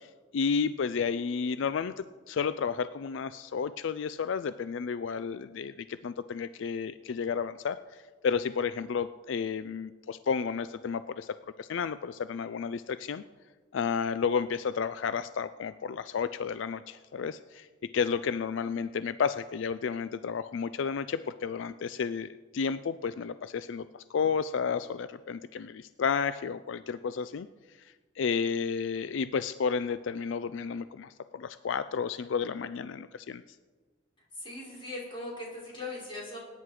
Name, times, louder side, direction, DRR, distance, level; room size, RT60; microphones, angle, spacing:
voice 1, 0.0-13.2 13.7-17.7 17.9-27.5 27.8-33.4, left 6 dB, 70° left, 13 dB, 0.4 m, -32 dB
voice 2, 34.3-36.4, left 2 dB, 25° left, -4 dB, 4.5 m, -39 dB
19.5 x 9.5 x 4.8 m, 1.4 s
head